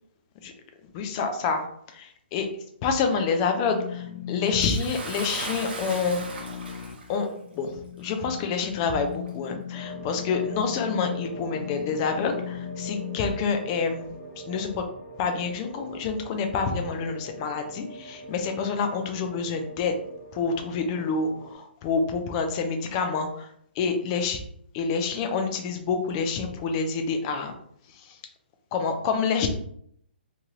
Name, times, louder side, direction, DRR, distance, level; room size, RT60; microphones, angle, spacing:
voice 1, 0.8-2.5 2.8-6.2 7.1-7.3 7.5-14.9 15.2-20.0 20.3-24.4 24.7-27.5 27.9-28.2 28.7-29.5, left 5 dB, 25° left, 6 dB, 0.4 m, -28 dB
sound 1, 3.5-13.2, left 12 dB, 85° left, 0.4 m, -39 dB
Bathtub (filling or washing) / Splash splatter, 4.6-7.2 8.1-8.2 9.2-9.3, right 3 dB, 60° right, 0.7 m, -37 dB
sound 2, 9.7-21.5, right 2 dB, 20° right, 0.7 m, -43 dB
2.9 x 2.3 x 2.9 m, 0.67 s
hypercardioid pair, 155°, 6 cm